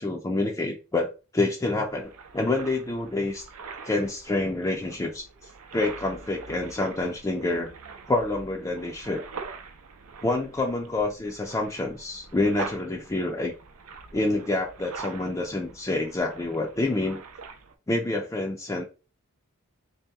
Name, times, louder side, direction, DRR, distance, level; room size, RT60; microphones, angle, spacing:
voice 1, 0.0-3.5 3.8-5.3 5.7-7.7 8.1-9.2 10.2-13.5 14.1-17.2 17.9-18.8, left 2 dB, 15° left, 0.4 m, -27 dB
sound 1, 1.6-17.7, right 4 dB, 90° right, 0.6 m, -43 dB
3.7 x 2.8 x 3.4 m
head